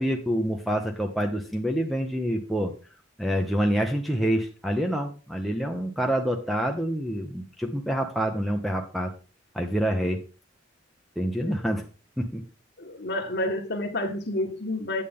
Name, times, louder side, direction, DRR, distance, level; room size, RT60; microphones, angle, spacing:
voice 1, 0.0-2.7 3.2-9.1 9.5-10.2 11.2-11.8 12.2-12.4, equal, ahead, 1 dB, 0.8 m, -27 dB
voice 2, 12.8-15.0, left 1 dB, 55° left, 4 dB, 1.5 m, -29 dB
8.7 x 8.2 x 3.6 m, 0.35 s
head